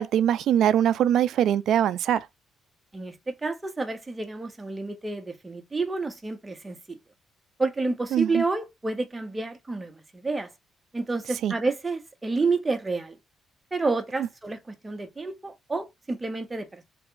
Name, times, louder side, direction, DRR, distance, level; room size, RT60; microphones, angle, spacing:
voice 1, 0.0-2.2 8.1-8.4 11.4-11.5, right 10 dB, 75° right, 0.3 m, -22 dB
voice 2, 2.9-7.0 7.6-10.5 10.9-13.2 13.7-16.8, right 3 dB, 20° right, 0.9 m, -29 dB
3.4 x 2.4 x 4.4 m
cardioid pair, 90°, 0 cm